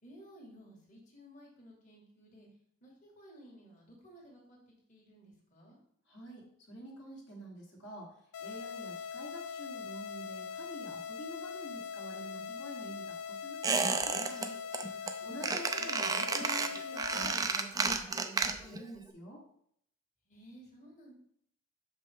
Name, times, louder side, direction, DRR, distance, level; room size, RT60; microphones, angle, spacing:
voice 1, 0.0-2.5 2.8-4.6 4.9-5.8 15.1-15.6 20.3-21.1, equal, 35° left, -3 dB, 1.7 m, -55 dB
voice 2, 6.1-8.1 8.4-14.6 14.9-19.4, right 1 dB, 55° left, -3 dB, 1.7 m, -48 dB
sound 1, 8.3-17.3, left 6 dB, 80° left, 0.4 m, -42 dB
Squeak, 13.6-14.5 14.7-15.1 15.4-18.8 19.1-19.2, right 4 dB, 15° right, 0.4 m, -32 dB
6.4 x 5.2 x 3.5 m, 0.67 s
head